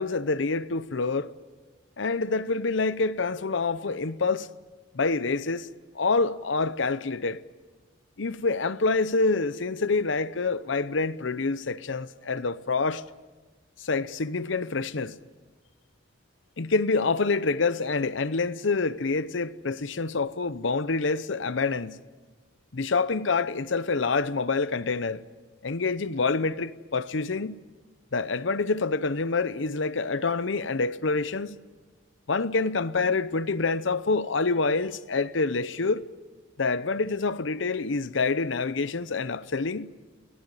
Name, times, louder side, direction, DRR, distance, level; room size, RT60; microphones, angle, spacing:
voice 1, 0.0-1.3 2.0-4.5 4.9-5.7 5.9-7.4 8.2-13.0 13.8-15.2 16.6-22.0 22.7-25.2 25.6-27.6 28.1-31.6 32.3-36.0 36.6-39.9, left 4 dB, 70° left, 0.8 m, -27 dB
24.5 x 17.5 x 9.9 m
head